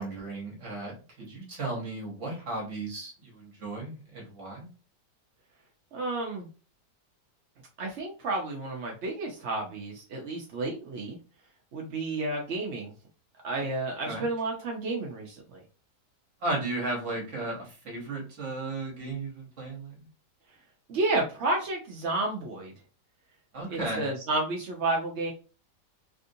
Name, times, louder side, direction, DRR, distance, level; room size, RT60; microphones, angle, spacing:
voice 1, 0.0-4.7 14.1-14.2 16.4-20.1 23.5-24.1, right 2 dB, 50° right, -1 dB, 1.3 m, -35 dB
voice 2, 5.9-6.5 7.8-11.2 11.7-12.9 13.4-15.6 20.9-22.7 23.7-25.3, right 2 dB, 65° right, -1 dB, 0.7 m, -31 dB
3.4 x 2.5 x 2.6 m, 0.36 s
omnidirectional pair, 1.8 m